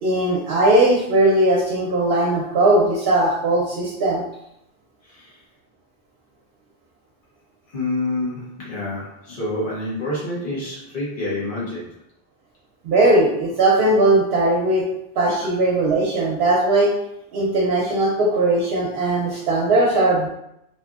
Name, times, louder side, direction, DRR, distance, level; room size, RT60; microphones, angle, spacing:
voice 1, 0.0-4.2 12.8-14.8 15.2-16.9 17.3-20.3, right 2 dB, 70° right, -3 dB, 0.8 m, -18 dB
voice 2, 5.0-5.4 7.7-11.9, left 2 dB, 55° left, -7 dB, 1.1 m, -28 dB
2.7 x 2.5 x 2.3 m, 0.81 s
omnidirectional pair, 1.0 m